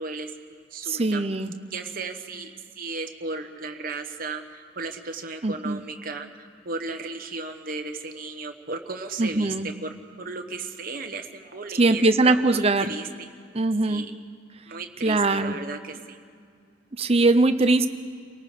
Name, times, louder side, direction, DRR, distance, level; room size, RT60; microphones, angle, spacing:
voice 1, 0.0-1.3 1.7-9.5 9.8-9.9 10.2-13.3 13.8-14.1 14.7-16.2, right 3 dB, 50° right, 5 dB, 1.3 m, -35 dB
voice 2, 0.8-1.5 5.4-5.8 9.2-9.7 11.8-12.9 13.5-14.0 15.0-15.6 16.9-17.9, right 2 dB, 30° right, 10 dB, 0.8 m, -21 dB
29.0 x 18.5 x 5.1 m, 2.2 s
head